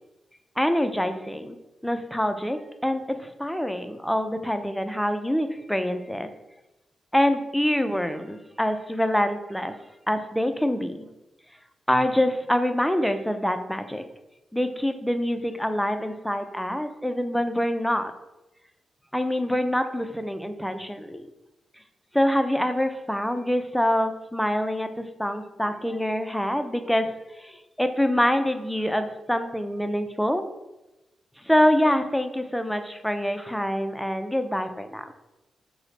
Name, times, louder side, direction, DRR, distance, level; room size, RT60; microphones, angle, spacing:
voice 1, 0.6-1.6 1.8-6.3 7.1-9.7 10.1-11.1 11.9-14.0 14.5-18.1 19.1-21.3 22.1-30.5 31.4-35.1, equal, 5° left, 8 dB, 0.4 m, -25 dB
3.7 x 2.1 x 3.2 m, 0.98 s
supercardioid pair, 50°, 0 cm